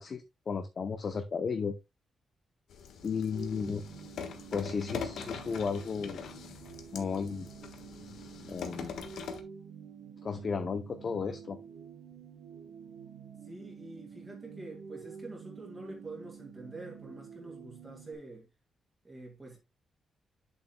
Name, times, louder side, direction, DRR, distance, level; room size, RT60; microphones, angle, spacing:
voice 1, 0.0-1.7 3.0-3.9 4.5-6.2 6.9-7.5 8.5-9.0 10.2-11.6, left 5 dB, 35° left, 0.6 m, -34 dB
sound 1, 2.7-9.4, left 6 dB, 80° left, 1.4 m, -43 dB
sound 2, 3.3-18.1, right 7 dB, 55° right, 1.4 m, -49 dB
voice 2, 13.4-18.5 19.0-19.6, right 2 dB, 15° right, 2.0 m, -46 dB
8.3 x 7.5 x 2.2 m
wide cardioid pair, 175°, 0 cm